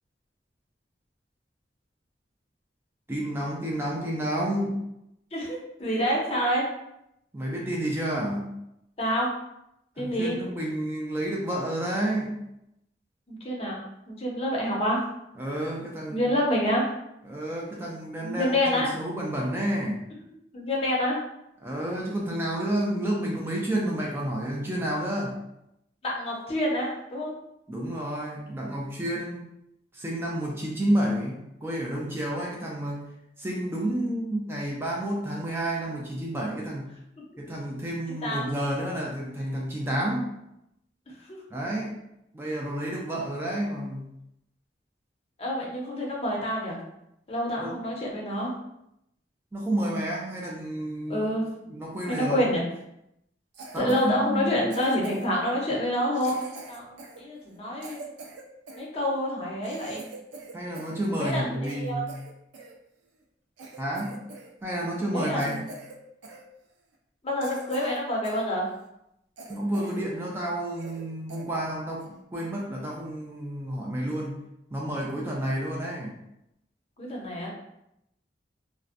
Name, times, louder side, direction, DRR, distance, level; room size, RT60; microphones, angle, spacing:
voice 1, 3.1-4.8 7.3-8.5 10.0-12.4 15.4-16.3 17.2-20.0 21.6-25.4 27.7-29.5 29.9-33.1 33.4-36.9 37.4-40.3 41.5-42.0 42.3-44.1 47.6-47.8 49.5-51.3 51.6-52.5 53.7-54.6 60.5-62.2 63.8-64.2 64.6-65.6 69.5-74.4 74.7-76.2, right 1 dB, 15° right, -3 dB, 0.3 m, -30 dB
voice 2, 5.3-6.6 9.0-9.3 10.0-10.4 13.3-13.8 14.1-15.0 16.1-16.8 18.2-18.9 20.5-21.2 26.0-27.3 38.2-38.4 41.1-41.4 45.4-46.8 47.3-48.5 51.1-51.5 52.1-52.6 53.8-58.1 58.7-60.0 61.2-62.0 65.1-65.6 67.2-68.7 77.0-77.5, equal, 35° left, -3 dB, 0.6 m, -27 dB
Cough, 53.5-54.1 54.7-55.4 56.1-58.9 59.3-59.4 59.6-61.0 61.3-62.7 63.2-63.3 63.6-64.5 64.8-65.0 65.4-66.0 66.2-66.4 66.9-67.0 67.4-68.5 68.8-68.9 69.4-70.1 70.4-70.5 70.8-71.0 71.3-71.5 72.0-72.2, right 3 dB, 85° right, 0.4 m, -44 dB
2.4 x 2.1 x 2.4 m, 0.82 s
head